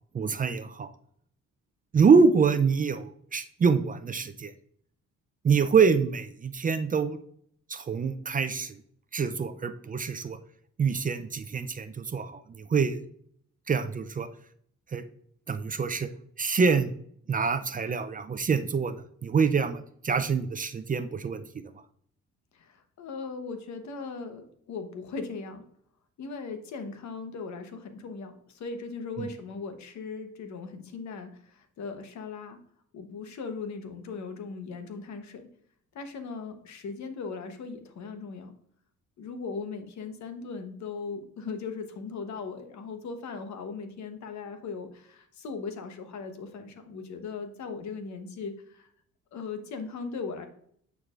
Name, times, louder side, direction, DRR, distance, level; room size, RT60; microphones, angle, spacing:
voice 1, 0.1-0.9 1.9-4.5 5.4-7.2 7.7-8.8 9.1-10.4 10.8-13.0 13.7-14.3 14.9-15.0 15.5-16.1 16.4-16.9 17.3-21.6 29.2-29.3, right 5 dB, 30° right, 10 dB, 0.4 m, -25 dB
voice 2, 22.5-25.6 26.2-32.6 32.9-35.5 35.9-38.5 39.2-48.9 49.3-50.5, left 4 dB, 70° left, 7 dB, 1.0 m, -38 dB
8.5 x 4.7 x 2.4 m, 0.65 s
cardioid pair, 90°, 30 cm